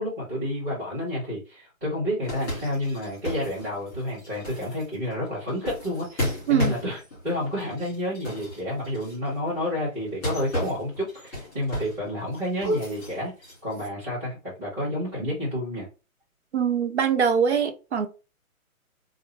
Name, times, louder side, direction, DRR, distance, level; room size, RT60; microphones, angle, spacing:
voice 1, 0.0-13.3 13.6-15.9, left 1 dB, 15° right, 1.7 m, -30 dB
sound 1, 2.2-9.3 10.1-12.1 12.3-13.9, equal, 10° left, 1.9 m, -33 dB
voice 2, 16.5-18.1, right 7 dB, 50° right, 0.6 m, -23 dB
3.0 x 2.6 x 3.2 m
hypercardioid pair, 175°, 43 cm